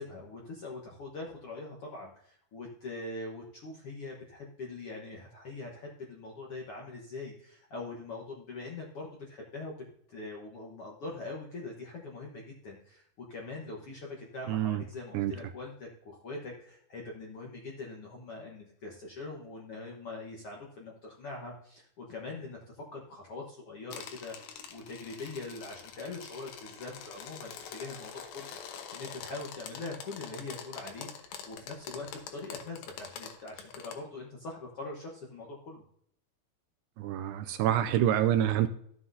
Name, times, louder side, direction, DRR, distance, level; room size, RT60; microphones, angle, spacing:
voice 1, 0.0-9.7 10.1-35.8, left 3 dB, 60° left, -1 dB, 1.5 m, -43 dB
voice 2, 14.5-14.8 15.1-15.3 37.0-38.7, right 11 dB, 80° right, 8 dB, 2.1 m, -27 dB
sound 1, 23.9-34.0, left 7 dB, 75° left, 2.8 m, -45 dB
14.5 x 7.6 x 2.7 m, 0.69 s
omnidirectional pair, 4.3 m